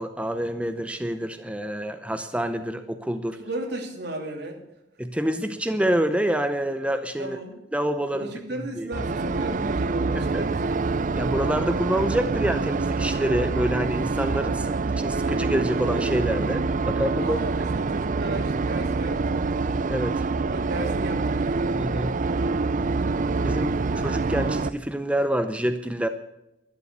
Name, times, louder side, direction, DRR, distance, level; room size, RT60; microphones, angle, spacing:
voice 1, 0.0-3.4 5.0-7.4 7.7-8.3 8.8-8.9 10.2-10.4 11.2-17.4 19.9-20.2 21.8-22.2 23.4-26.1, right 1 dB, 5° right, 8 dB, 0.6 m, -27 dB
voice 2, 3.4-4.7 7.2-7.6 8.1-10.8 17.2-19.7 20.4-21.6, right 1 dB, 60° right, 3 dB, 2.8 m, -35 dB
sound 1, 8.9-24.7, right 3 dB, 45° right, 0.5 m, -26 dB
12.5 x 11.0 x 6.8 m, 0.90 s
head